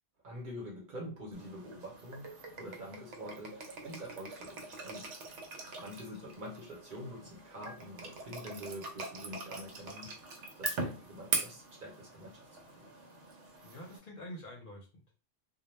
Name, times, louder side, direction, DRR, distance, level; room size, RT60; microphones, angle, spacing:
voice 1, 0.2-5.1 5.5-12.5 12.8-12.9, equal, 50° right, 0.8 m, -46 dB
sound 1, 1.3-14.0, right 4 dB, 90° right, 1.0 m, -42 dB
voice 2, 13.6-15.1, equal, 55° left, 0.7 m, -47 dB
2.2 x 2.1 x 3.0 m
omnidirectional pair, 1.2 m